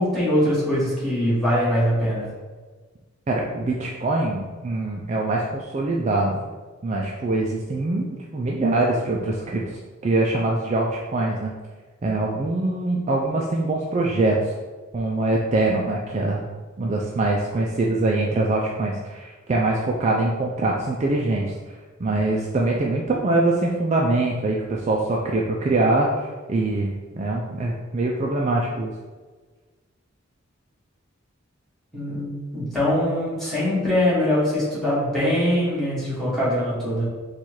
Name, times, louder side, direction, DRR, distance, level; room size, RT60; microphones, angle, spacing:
voice 1, 0.0-2.3 31.9-37.1, left 1 dB, ahead, -10 dB, 1.5 m, -22 dB
voice 2, 3.3-6.4 6.8-11.5 12.0-14.5 14.9-16.4 16.8-21.5 22.0-28.9, right 2 dB, 35° right, -1 dB, 0.4 m, -23 dB
4.2 x 2.4 x 4.6 m, 1.4 s
head